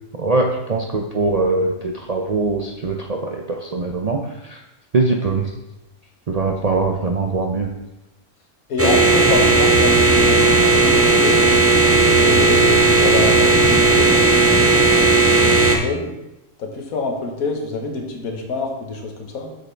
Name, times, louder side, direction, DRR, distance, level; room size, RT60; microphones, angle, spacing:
voice 1, 0.2-4.6 4.9-5.5 6.3-7.7, right 3 dB, 85° right, 1 dB, 0.3 m, -22 dB
voice 2, 8.7-11.5 12.1-15.0 15.4-16.1 16.6-19.5, left 3 dB, 75° left, 2 dB, 1.5 m, -26 dB
sound 1, 8.8-15.8, right 3 dB, 15° right, 0.6 m, -14 dB
7.8 x 6.6 x 3.3 m, 0.94 s
omnidirectional pair, 1.5 m